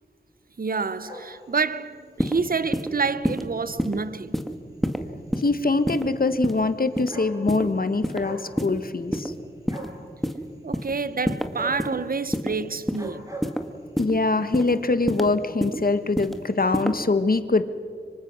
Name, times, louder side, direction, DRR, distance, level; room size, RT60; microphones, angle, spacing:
voice 1, 0.6-4.4 10.6-13.3 14.4-14.5, right 4 dB, 55° right, 0.9 m, -28 dB
sound 1, 0.8-2.0 2.6-2.8 3.7-3.8 3.9-4.0 4.3-4.4 5.6-5.7 6.6-6.7 6.9-7.7 8.0-8.5 8.8-9.4 9.7-10.1 11.5-11.9 12.8-14.0 14.9-15.1 15.4-15.5 15.7-15.8 16.0-16.9, right 1 dB, 20° right, 6.3 m, -40 dB
sound 2, 2.2-2.4 2.7-2.9 3.2-3.4 3.8-4.0 4.3-4.5 4.8-5.0 5.3-5.5 5.9-6.1 6.4-6.6 7.0-7.1 7.5-7.6 8.0-8.2 8.6-8.7 9.1-9.3 9.7-9.9 10.2-10.4 10.7-10.9 11.3-11.5 11.8-12.0 12.3-12.5 12.9-13.1 13.4-13.6 14.0-14.1 14.5-14.7 15.1-15.3 15.6-15.8 16.2-16.4 16.7-16.9, equal, ahead, 2.1 m, -26 dB
voice 2, 5.4-9.3 14.0-17.6, left 3 dB, 55° left, 1.4 m, -23 dB
26.0 x 24.0 x 6.2 m
cardioid pair, 45°, 18 cm